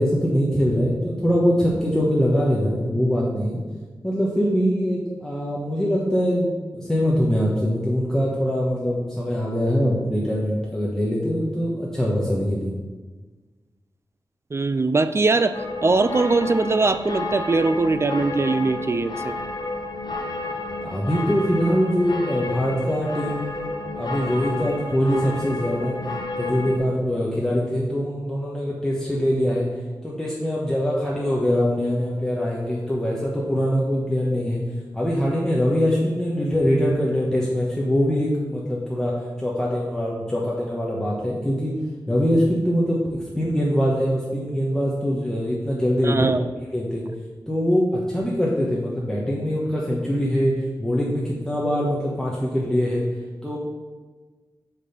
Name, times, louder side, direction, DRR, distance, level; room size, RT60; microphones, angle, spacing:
voice 1, 0.0-3.6 4.0-12.7 20.8-26.0 26.4-29.7 30.0-34.6 34.9-41.7 42.1-43.0 43.3-46.4 46.7-47.0 47.5-53.1 53.4-53.6, equal, 5° left, -5 dB, 1.2 m, -23 dB
voice 2, 14.5-19.3 46.0-46.5, right 3 dB, 35° right, 12 dB, 0.3 m, -21 dB
sound 1, 15.5-26.8, left 2 dB, 65° left, 1.0 m, -31 dB
6.2 x 5.3 x 5.7 m, 1.3 s
wide cardioid pair, 90°, 8 cm